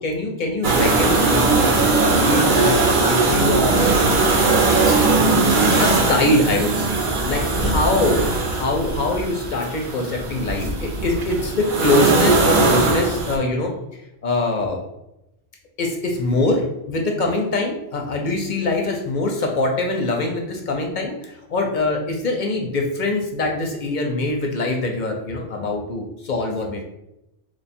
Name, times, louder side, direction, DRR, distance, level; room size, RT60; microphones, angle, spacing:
voice 1, 0.0-3.9 5.8-13.7 14.2-14.8 15.8-26.8, left 2 dB, 55° left, 2 dB, 0.6 m, -23 dB
sound 1, 0.6-13.4, right 3 dB, 55° right, 0.7 m, -19 dB
3.1 x 2.3 x 4.1 m, 0.87 s
omnidirectional pair, 1.2 m